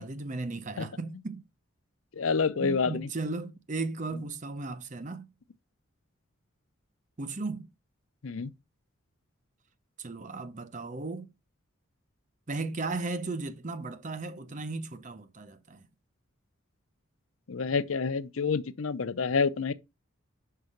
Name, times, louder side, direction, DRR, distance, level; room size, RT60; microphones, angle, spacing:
voice 1, 0.0-1.5 2.6-5.3 7.2-7.7 10.0-11.3 12.5-15.9, right 3 dB, 35° right, 0.7 m, -36 dB
voice 2, 2.2-3.1 8.2-8.5 17.5-19.7, left 5 dB, 75° left, 0.6 m, -28 dB
5.7 x 4.7 x 6.5 m
head